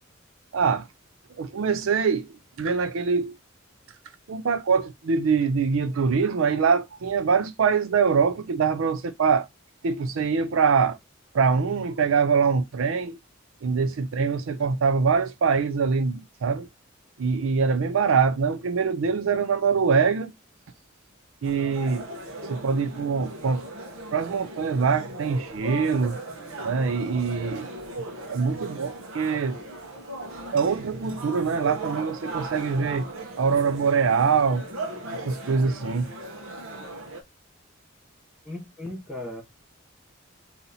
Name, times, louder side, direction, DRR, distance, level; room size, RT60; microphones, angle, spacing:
voice 1, 0.5-0.9 1.4-3.4 4.3-9.5 9.8-11.0 11.3-13.2 13.6-16.7 17.2-20.3 21.4-22.1 22.5-23.6 24.1-26.2 26.6-27.7 28.3-29.6 30.5-33.1 33.4-34.6 35.2-36.1, right 5 dB, 75° right, 0.4 m, -24 dB
sound 1, 21.4-37.2, right 2 dB, 90° right, 1.0 m, -38 dB
voice 2, 38.4-39.4, left 1 dB, 5° right, 2.0 m, -36 dB
4.0 x 2.8 x 4.0 m
head